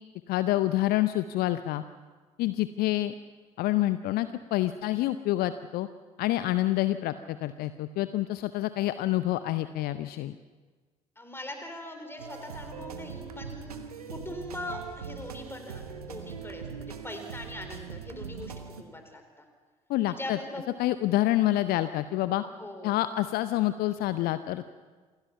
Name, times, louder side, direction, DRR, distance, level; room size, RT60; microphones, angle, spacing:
voice 1, 0.3-1.8 2.4-3.1 3.6-5.9 6.2-10.4 19.9-20.4 20.8-22.4 22.8-24.7, left 15 dB, 55° left, 13 dB, 0.7 m, -27 dB
voice 2, 11.2-13.8 14.1-19.5 20.1-20.6 22.4-22.9, left 1 dB, 10° left, 5 dB, 4.1 m, -41 dB
sound 1, 12.2-18.8, right 6 dB, 80° right, 1.2 m, -41 dB
27.0 x 16.5 x 5.9 m, 1.4 s
figure-of-eight pair, 50°, 19 cm